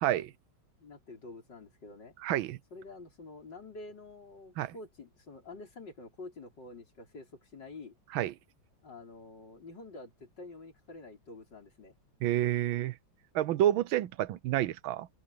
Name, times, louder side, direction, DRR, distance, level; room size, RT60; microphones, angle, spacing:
voice 1, 0.0-0.3 2.2-2.6 4.6-4.7 8.1-8.3 12.2-12.9 13.3-15.1, right 13 dB, 85° right, 1.5 m, -29 dB
voice 2, 0.8-2.1 2.7-8.0 8.8-12.0, left 3 dB, 60° left, 6.3 m, -48 dB
open air
omnidirectional pair, 2.1 m